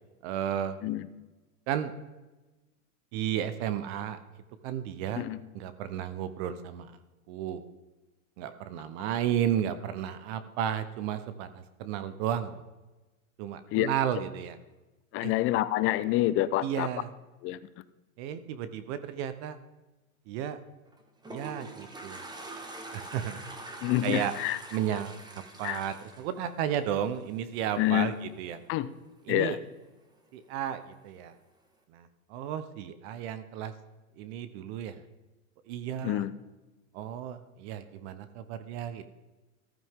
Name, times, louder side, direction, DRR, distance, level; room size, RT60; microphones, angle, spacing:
voice 1, 0.2-0.8 1.7-1.9 3.1-4.2 4.6-5.2 5.5-6.9 7.3-7.6 8.4-12.6 13.4-14.6 15.2-15.3 16.6-17.1 18.2-19.6 20.3-20.6 21.3-22.2 22.9-23.4 24.0-24.3 24.7-25.2 25.6-28.6 29.3-29.6 30.3-31.3 31.9-33.7 34.2-35.0 35.7-36.2 36.9-39.1, right 10 dB, 50° right, 11 dB, 1.0 m, -33 dB
voice 2, 15.1-16.9 17.4-17.6 23.8-24.6 25.6-25.8 27.8-28.1 28.7-28.9 29.3-29.6 36.0-36.3, left 15 dB, 30° left, 15 dB, 0.7 m, -27 dB
Toilet flush, 20.9-27.2, right 2 dB, 10° right, 1.5 m, -44 dB
14.5 x 12.5 x 3.7 m, 1.2 s
hypercardioid pair, 130°, 42 cm